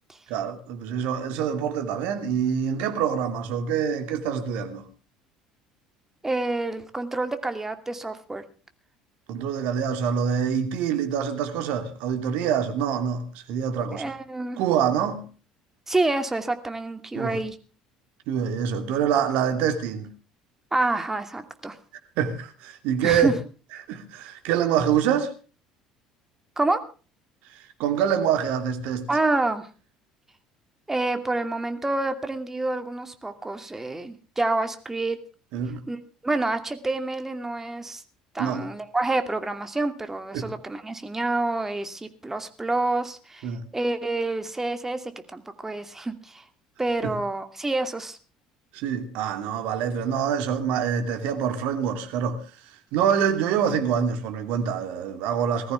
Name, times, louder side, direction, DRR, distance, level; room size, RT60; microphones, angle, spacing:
voice 1, 0.3-4.9 9.3-14.0 14.6-15.2 17.1-17.4 18.3-20.1 22.2-23.3 23.9-25.3 27.5-29.1 35.5-35.8 38.4-38.7 40.3-40.5 43.4-43.6 47.0-47.2 48.7-52.4 52.9-55.7, right 8 dB, 65° right, 2.6 m, -25 dB
voice 2, 6.2-8.4 13.9-14.6 15.9-17.5 20.7-21.8 23.0-23.3 26.6-26.8 29.1-29.7 30.9-35.2 35.9-36.0 36.2-38.0 38.3-46.4 46.8-48.2, right 2 dB, 15° right, 2.5 m, -28 dB
20.0 x 14.0 x 3.5 m
hypercardioid pair, 65°, 3 cm